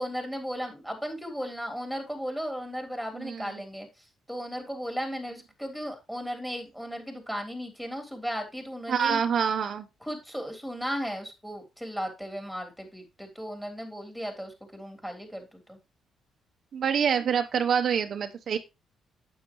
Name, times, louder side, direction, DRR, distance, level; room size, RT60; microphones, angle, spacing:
voice 1, 0.0-9.2 10.0-15.8, equal, 5° left, 4 dB, 3.4 m, -36 dB
voice 2, 3.2-3.5 8.9-9.8 16.7-18.6, right 7 dB, 55° right, 7 dB, 0.8 m, -26 dB
9.2 x 8.0 x 3.0 m, 0.25 s
cardioid pair, 90°, 0 cm